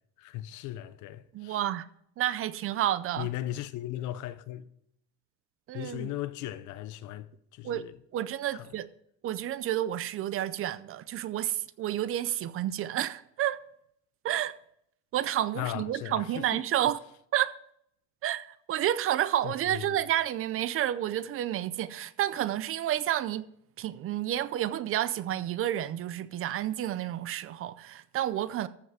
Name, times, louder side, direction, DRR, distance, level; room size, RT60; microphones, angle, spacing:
voice 1, 0.2-1.6 3.2-4.7 5.7-8.0 8.5-8.7 15.5-16.9 19.4-20.0, left 13 dB, 60° left, 0.8 m, -37 dB
voice 2, 1.3-1.9 2.2-3.3 5.7-6.1 7.6-7.8 8.1-8.9 9.2-13.6 14.2-14.5 15.1-17.0 17.3-17.5 18.2-23.5 23.8-28.7, right 12 dB, 40° right, 0.5 m, -30 dB
14.0 x 5.6 x 4.9 m
cardioid pair, 135°, 33 cm